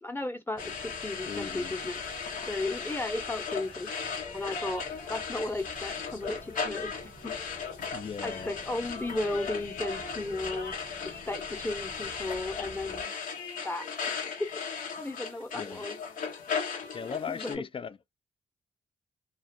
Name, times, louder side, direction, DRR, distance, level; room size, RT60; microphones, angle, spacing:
voice 1, 0.0-2.0 2.5-3.9 4.3-4.8 5.1-7.4 8.2-10.7 11.0-13.1 13.6-13.9 15.0-16.0 17.3-17.6, left 2 dB, 15° left, 0.8 m, -35 dB
sound 1, 0.5-13.0, right 2 dB, 20° right, 0.5 m, -51 dB
sound 2, 0.6-17.6, left 5 dB, 70° left, 0.8 m, -37 dB
voice 2, 1.3-1.7 7.9-8.5 15.5-15.9 16.9-18.0, left 6 dB, 40° left, 0.4 m, -37 dB
2.3 x 2.1 x 2.6 m
supercardioid pair, 45°, 15 cm